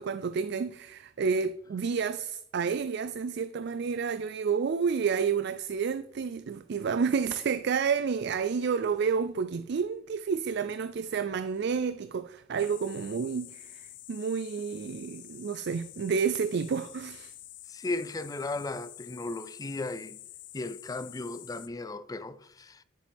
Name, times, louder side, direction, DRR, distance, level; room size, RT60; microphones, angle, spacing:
voice 1, 0.0-17.3, right 6 dB, 60° right, 0.4 m, -30 dB
sound 1, 12.6-21.7, left 14 dB, 65° left, 0.7 m, -48 dB
voice 2, 17.7-20.2 20.5-22.8, left 2 dB, 20° left, 0.4 m, -36 dB
10.0 x 7.1 x 3.5 m
head